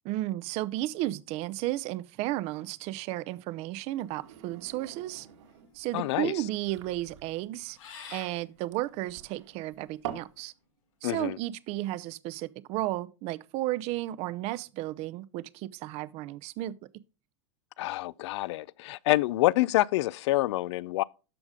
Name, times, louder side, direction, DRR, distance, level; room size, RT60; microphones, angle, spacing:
voice 1, 0.0-5.3 5.7-7.8 8.1-10.5 11.0-16.8, right 16 dB, 40° right, 0.6 m, -33 dB
sound 1, 3.9-10.4, right 10 dB, 70° right, 1.9 m, -46 dB
sound 2, 4.4-10.2, left 6 dB, 80° left, 5.7 m, -52 dB
voice 2, 5.9-6.3 11.0-11.4 17.8-21.0, left 17 dB, 65° left, 0.4 m, -27 dB
13.0 x 5.0 x 3.6 m
supercardioid pair, 130°, 16 cm